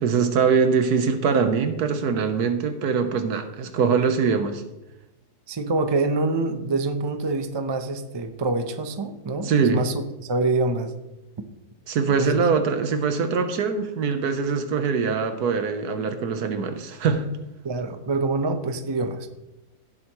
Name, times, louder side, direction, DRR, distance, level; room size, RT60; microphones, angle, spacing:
voice 1, 0.0-4.6 9.4-9.8 11.9-17.3, right 5 dB, 85° right, 8 dB, 1.5 m, -23 dB
voice 2, 5.5-10.9 12.2-12.4 17.6-19.3, right 3 dB, 25° right, 8 dB, 0.6 m, -26 dB
16.0 x 7.9 x 3.1 m, 0.97 s
omnidirectional pair, 1.6 m